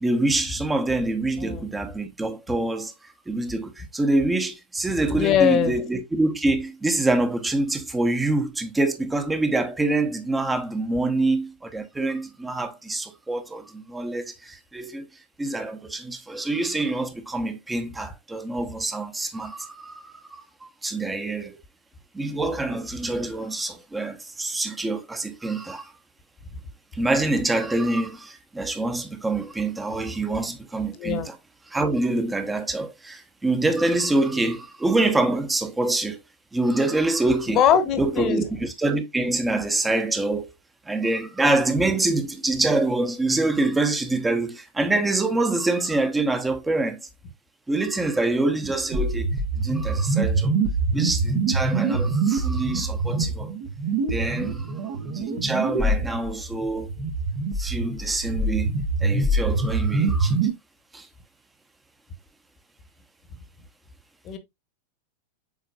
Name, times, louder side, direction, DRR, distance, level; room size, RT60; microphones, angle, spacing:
voice 1, 0.0-15.0 15.4-20.1 20.8-21.6 22.1-25.9 26.9-31.4 31.7-36.2 36.5-37.6 38.0-40.5 40.9-47.1 47.7-50.5 50.9-53.5 54.1-54.7 55.1-56.9 57.6-58.7 59.0-60.5 60.9-61.1, right 2 dB, 10° right, 1.2 m, -25 dB
voice 2, 5.1-5.8 31.0-31.3 37.5-38.4 64.2-64.4, left 8 dB, 35° left, 1.4 m, -21 dB
sound 1, 48.9-60.5, right 3 dB, 50° right, 1.6 m, -25 dB
7.5 x 5.0 x 2.5 m
figure-of-eight pair, 90°, 0 cm